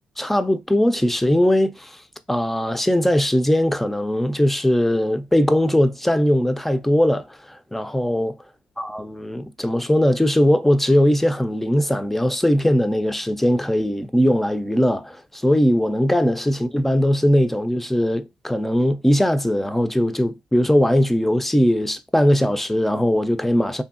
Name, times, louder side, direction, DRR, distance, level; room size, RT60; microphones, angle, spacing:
voice 1, 0.2-2.0 2.3-8.4 8.8-23.8, equal, 5° left, 0.3 m, -20 dB
2.7 x 2.6 x 2.4 m
cardioid pair, 85°, 3 cm